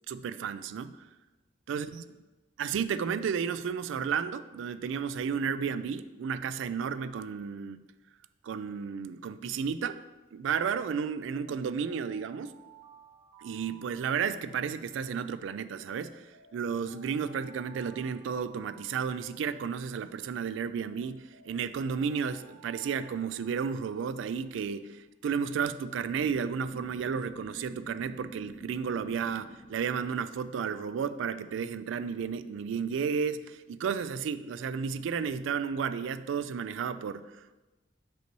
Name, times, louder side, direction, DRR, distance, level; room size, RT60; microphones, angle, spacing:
voice 1, 0.1-0.9 1.7-2.0 2.6-7.8 8.4-10.0 10.3-12.5 13.4-16.2 16.5-37.5, right 6 dB, 80° right, 13 dB, 0.3 m, -32 dB
Alarm, 11.1-15.3 15.8-20.3 20.8-24.6, right 4 dB, 40° right, 0.7 m, -58 dB
sound 1, 26.1-31.1, right 1 dB, 25° left, 0.8 m, -49 dB
6.6 x 5.3 x 3.0 m, 1.2 s
head